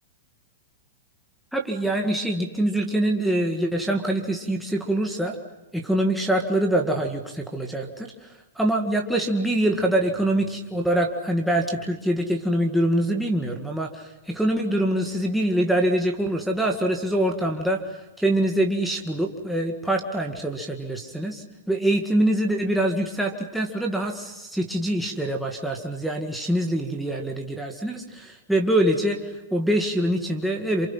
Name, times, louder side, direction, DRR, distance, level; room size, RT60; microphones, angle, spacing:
voice 1, 1.5-5.4 5.7-30.9, right 1 dB, ahead, 0 dB, 2.3 m, -24 dB
28.5 x 27.0 x 5.8 m, 1.0 s
hypercardioid pair, 125°, 0 cm